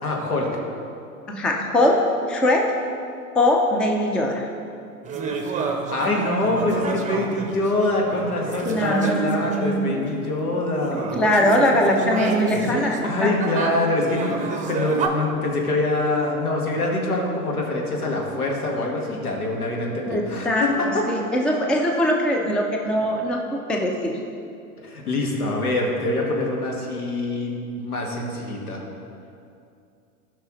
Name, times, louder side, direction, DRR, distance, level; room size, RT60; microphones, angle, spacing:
voice 1, 0.0-0.5 5.9-11.1 11.9-21.0 24.8-28.8, left 2 dB, 85° left, -1 dB, 1.8 m, -25 dB
voice 2, 1.3-2.7 3.3-4.5 8.6-10.1 10.9-13.3 20.1-24.2, left 1 dB, ahead, 1 dB, 0.4 m, -22 dB
sound 1, 5.0-10.3 10.7-15.1, right 4 dB, 15° right, 0.8 m, -30 dB
14.0 x 5.7 x 3.1 m, 2.5 s
hypercardioid pair, 95°, 44 cm